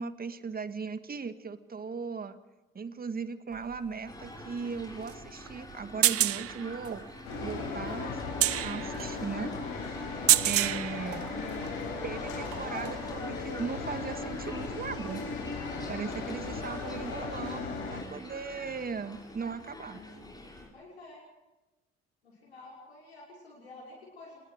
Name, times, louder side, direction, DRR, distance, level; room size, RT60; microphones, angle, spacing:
voice 1, 0.0-2.4 2.7-7.0 7.4-8.2 8.6-9.5 10.5-11.3 12.0-15.2 15.9-20.0, right 5 dB, 30° right, 11 dB, 1.8 m, -38 dB
sound 1, 3.5-11.8 12.3-13.1 14.4-14.5, right 13 dB, 45° right, 0.9 m, -30 dB
sound 2, 4.1-20.7, left 1 dB, 10° left, 7.5 m, -46 dB
sound 3, 7.2-18.0, left 4 dB, 65° left, 7.7 m, -37 dB
voice 2, 19.8-20.3 20.7-21.2 22.2-24.4, left 2 dB, 85° left, -4 dB, 6.0 m, -50 dB
27.0 x 20.5 x 5.1 m, 1.0 s
figure-of-eight pair, 55°, 31 cm